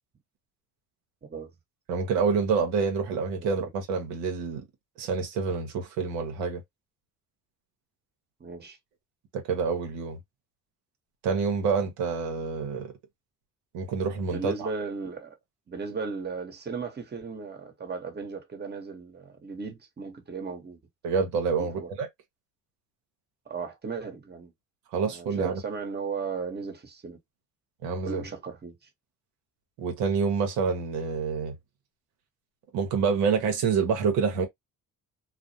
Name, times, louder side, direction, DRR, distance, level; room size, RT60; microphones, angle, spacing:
voice 1, 1.9-4.6 5.0-6.6 9.3-10.2 11.2-12.9 13.7-14.7 21.0-22.1 24.9-25.6 27.8-28.2 29.8-31.5 32.7-34.5, right 5 dB, 90° right, 0.7 m, -27 dB
voice 2, 8.4-8.8 14.3-15.4 15.7-20.8 21.6-21.9 23.5-24.5 25.0-27.2 28.0-28.9, right 5 dB, 25° right, 0.9 m, -36 dB
2.4 x 2.0 x 2.6 m
supercardioid pair, 65°, 38 cm